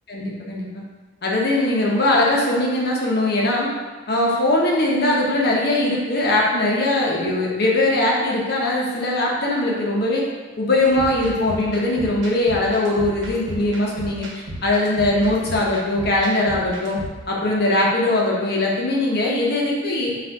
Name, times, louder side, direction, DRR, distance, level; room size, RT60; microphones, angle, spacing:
voice 1, 0.1-0.8 1.2-3.7 4.1-10.2 10.6-14.3 14.6-17.0 17.3-20.1, left 1 dB, 55° left, -3 dB, 0.8 m, -20 dB
sound 1, 10.9-17.2, equal, 75° right, 0.9 m, -35 dB
3.9 x 2.5 x 4.5 m, 1.3 s
head